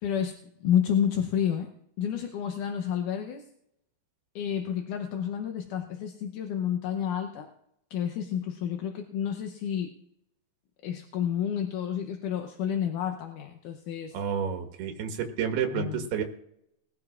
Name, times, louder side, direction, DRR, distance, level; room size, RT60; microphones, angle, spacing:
voice 1, 0.0-0.3 0.6-1.7 2.0-3.4 4.4-7.5 7.9-9.9 10.8-14.1 15.7-16.1, left 9 dB, 70° left, 4 dB, 2.1 m, -30 dB
voice 2, 14.1-16.2, right 7 dB, 90° right, 4 dB, 3.5 m, -30 dB
21.5 x 14.0 x 2.5 m, 0.77 s
omnidirectional pair, 4.4 m